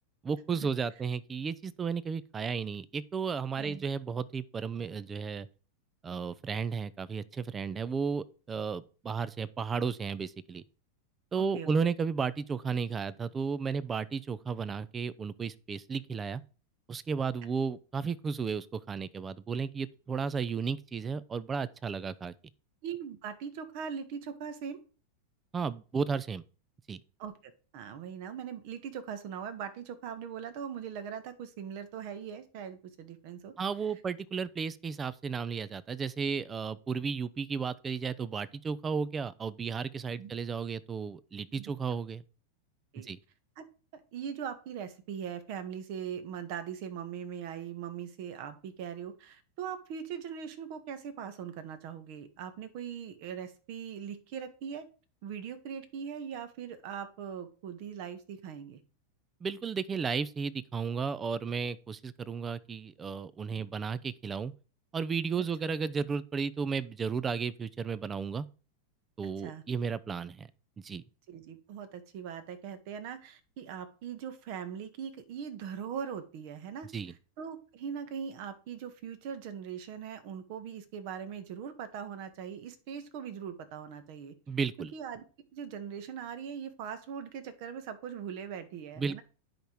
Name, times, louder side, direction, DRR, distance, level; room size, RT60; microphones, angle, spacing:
voice 1, 0.2-5.5 6.0-10.6 11.3-16.4 16.9-22.3 25.5-26.4 26.9-27.0 33.6-42.2 43.0-43.2 59.4-64.5 64.9-68.5 69.2-70.5 70.8-71.0 76.9-77.1 84.5-84.9 89.0-89.2, right 5 dB, 20° right, 0.7 m, -33 dB
voice 2, 11.4-11.7 22.8-24.8 27.2-33.5 40.2-40.3 41.6-41.7 42.9-43.1 43.6-43.7 43.9-54.8 55.2-58.8 63.5-63.7 69.2-69.6 71.3-76.9 77.4-84.3 84.8-85.2 85.5-89.2, right 8 dB, 45° right, 1.7 m, -41 dB
10.5 x 5.6 x 4.8 m
figure-of-eight pair, 90°, 0 cm